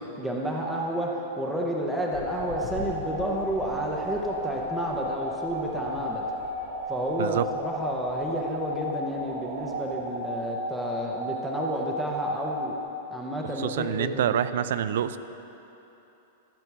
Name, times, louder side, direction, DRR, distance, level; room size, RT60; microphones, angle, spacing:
voice 1, 0.2-6.2 6.9-12.8 13.1-14.4, equal, ahead, -3 dB, 0.6 m, -30 dB
sound 1, 2.1-10.2, left 6 dB, 45° left, 1.0 m, -46 dB
sound 2, 2.4-12.8, equal, 45° right, 0.8 m, -34 dB
voice 2, 13.6-15.2, right 10 dB, 65° right, 13 dB, 0.4 m, -26 dB
13.0 x 4.4 x 7.2 m, 3.0 s
supercardioid pair, 175°, 0 cm